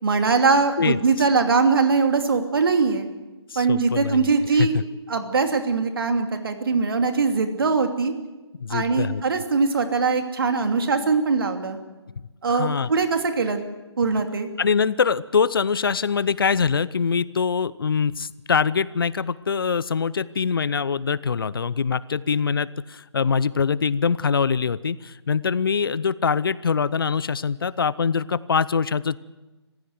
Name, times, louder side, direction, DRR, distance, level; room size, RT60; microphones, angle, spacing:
voice 1, 0.0-3.1 3.5-4.8 5.1-8.1 8.7-11.8 12.4-13.6 14.0-14.5, right 4 dB, 55° right, 6 dB, 2.8 m, -21 dB
voice 2, 3.5-4.3 4.6-4.8 8.6-9.2 12.5-12.9 14.6-29.2, left 6 dB, 55° left, 20 dB, 0.7 m, -23 dB
24.5 x 16.0 x 8.0 m, 1.2 s
figure-of-eight pair, 150°, 14 cm